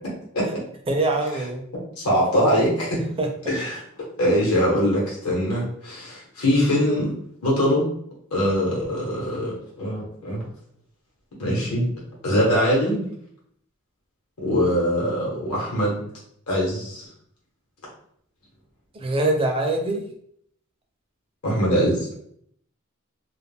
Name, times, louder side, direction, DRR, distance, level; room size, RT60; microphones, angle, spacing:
voice 1, 0.9-1.6 3.2-3.5 18.9-20.1, right 2 dB, 25° right, 2 dB, 0.4 m, -24 dB
voice 2, 1.7-3.0 3.5-3.8 4.2-7.1 7.4-7.9 8.3-10.4 11.4-11.8 12.2-13.1 14.4-16.0 16.5-17.1 21.4-22.1, equal, 75° left, -5 dB, 0.9 m, -22 dB
2.3 x 2.1 x 3.3 m, 0.67 s
head